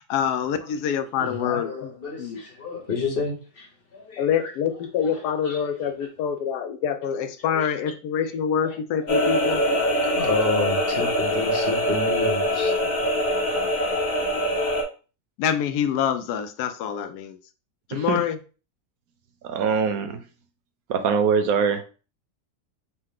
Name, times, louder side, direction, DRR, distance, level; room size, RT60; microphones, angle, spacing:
voice 1, 0.0-1.9 2.2-2.4 4.2-9.6 15.4-17.4 17.9-18.4, left 8 dB, 90° left, 1.1 m, -26 dB
voice 2, 1.2-3.7 3.9-4.3 5.0-5.1 5.4-5.6 7.5-7.7 9.6-12.7, left 4 dB, 40° left, 1.1 m, -30 dB
sound 1, 9.1-14.8, equal, 70° left, 1.6 m, -23 dB
voice 3, 19.4-20.2 20.9-21.8, right 6 dB, 70° right, 1.0 m, -23 dB
5.6 x 2.1 x 3.7 m
omnidirectional pair, 1.6 m